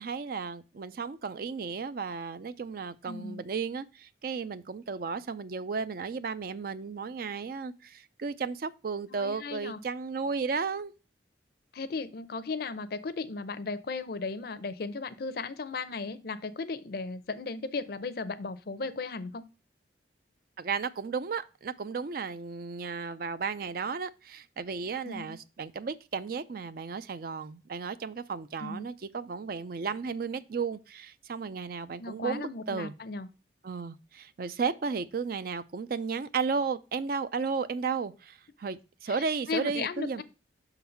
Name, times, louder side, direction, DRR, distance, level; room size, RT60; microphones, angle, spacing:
voice 1, 0.0-10.9 20.6-32.9 33.6-40.2, right 5 dB, 55° right, 0.4 m, -34 dB
voice 2, 3.0-3.4 9.1-9.8 11.7-19.4 25.0-25.4 28.6-28.9 32.0-33.3 39.1-40.2, left 4 dB, 55° left, 0.5 m, -36 dB
6.2 x 4.0 x 5.6 m
head